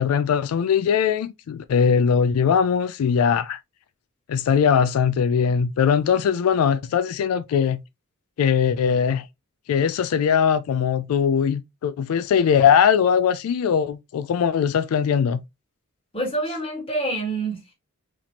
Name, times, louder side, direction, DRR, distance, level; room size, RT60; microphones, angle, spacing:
voice 1, 0.0-3.6 4.3-7.8 8.4-9.3 9.7-15.4, left 7 dB, 85° left, 0.3 m, -20 dB
voice 2, 16.1-17.7, right 2 dB, 25° left, 1.5 m, -27 dB
4.1 x 3.0 x 2.8 m
head